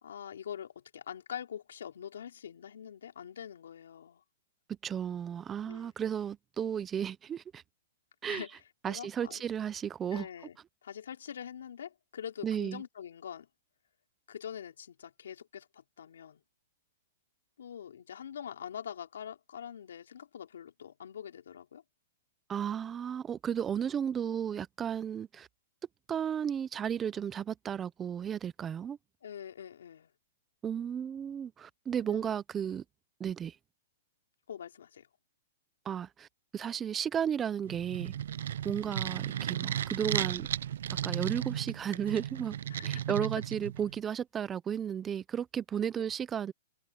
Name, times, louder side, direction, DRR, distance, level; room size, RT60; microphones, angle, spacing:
voice 1, 0.0-4.2 5.7-5.9 8.2-8.5 8.9-9.4 10.1-13.5 14.3-16.4 17.6-21.8 29.2-30.1 32.0-32.2 34.5-35.1 42.7-43.2 46.0-46.1, left 8 dB, 90° left, 3.9 m, -44 dB
voice 2, 4.8-7.6 8.2-8.4 8.8-10.3 12.4-12.8 22.5-25.5 26.1-29.0 30.6-32.8 33.2-33.6 35.9-36.3 36.5-38.1 38.6-40.5 41.0-42.6 42.8-46.5, right 8 dB, 15° right, 0.5 m, -34 dB
sound 1, 37.7-44.0, right 10 dB, 75° right, 0.5 m, -35 dB
hypercardioid pair, 160°, 0 cm